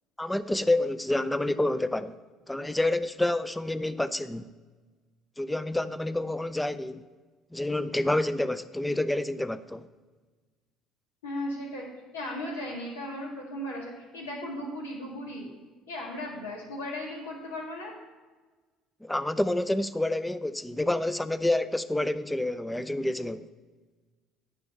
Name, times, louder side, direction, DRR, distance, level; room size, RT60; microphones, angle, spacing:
voice 1, 0.2-2.2 2.5-4.5 5.4-7.0 7.5-9.8 19.0-23.5, left 1 dB, 10° left, 0.5 m, -28 dB
voice 2, 11.2-11.9 12.1-15.5 15.9-17.9, left 1 dB, 85° left, 1.8 m, -36 dB
9.8 x 4.4 x 6.6 m
hypercardioid pair, 65°, 0 cm